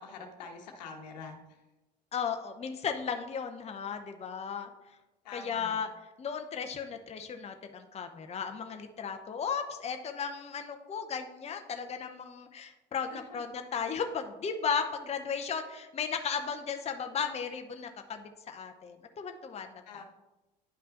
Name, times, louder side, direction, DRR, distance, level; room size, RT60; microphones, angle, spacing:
voice 1, 0.0-1.4 5.2-5.8 13.1-13.4 19.9-20.0, left 4 dB, 80° left, 3 dB, 1.0 m, -45 dB
voice 2, 2.1-4.7 5.3-5.9 6.2-20.0, left 6 dB, 30° left, 6 dB, 0.7 m, -35 dB
10.0 x 5.4 x 2.5 m, 1.0 s
hypercardioid pair, 60°, 21 cm